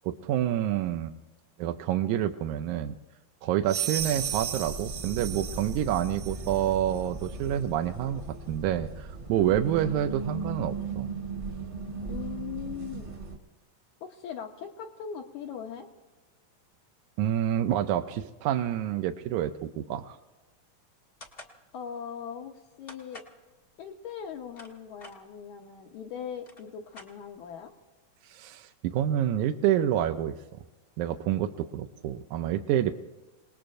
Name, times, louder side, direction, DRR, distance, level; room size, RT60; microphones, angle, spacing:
voice 1, 0.0-1.1 1.6-3.0 3.4-8.2 8.5-11.1 17.2-20.2 28.2-30.3 31.0-32.9, right 11 dB, 80° right, 6 dB, 1.8 m, -28 dB
sound 1, 3.7-6.7, right 10 dB, 65° right, 1.8 m, -35 dB
sound 2, 4.0-13.4, right 3 dB, 35° right, 1.1 m, -37 dB
voice 2, 12.1-13.1 14.0-15.9 21.7-23.2 23.8-27.7, left 8 dB, 70° left, 1 dB, 2.0 m, -40 dB
sound 3, 21.2-21.6 22.9-23.4 24.3-25.2 26.0-26.1 26.3-27.5, left 2 dB, 45° left, 0.7 m, -48 dB
28.5 x 19.5 x 2.6 m, 1.2 s
omnidirectional pair, 4.0 m